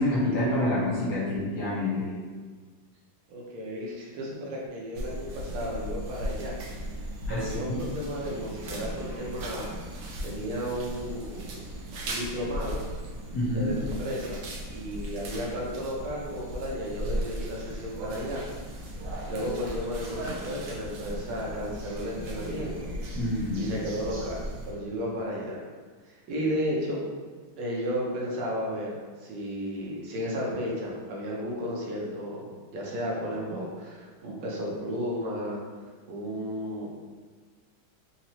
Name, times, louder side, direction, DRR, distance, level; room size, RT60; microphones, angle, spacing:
voice 1, 0.0-2.1 7.3-7.8 13.3-13.7 23.2-23.6, left 1 dB, 60° left, -8 dB, 1.6 m, -27 dB
voice 2, 3.3-6.6 7.3-9.7 10.2-11.7 12.1-12.8 13.5-14.4 14.7-18.5 19.3-22.9 23.5-25.6 26.0-27.0 27.6-35.6 36.1-36.9, equal, 90° right, -4 dB, 1.7 m, -33 dB
sound 1, 4.9-24.7, right 1 dB, 70° right, 1.2 m, -37 dB
4.1 x 2.8 x 2.9 m, 1.5 s
omnidirectional pair, 2.2 m